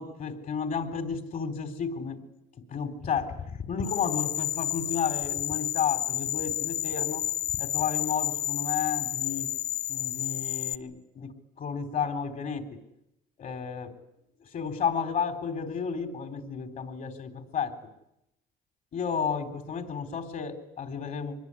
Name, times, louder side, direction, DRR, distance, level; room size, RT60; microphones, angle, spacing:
voice 1, 0.0-2.2 2.7-3.4 3.7-7.2 7.6-9.5 9.9-11.3 11.6-12.6 13.4-13.9 14.5-17.8 18.9-21.4, left 6 dB, 50° left, 7 dB, 4.0 m, -32 dB
sound 1, 3.8-10.7, left 13 dB, 65° left, 0.9 m, -31 dB
24.5 x 21.0 x 9.8 m, 0.86 s
cardioid pair, 110°, 17 cm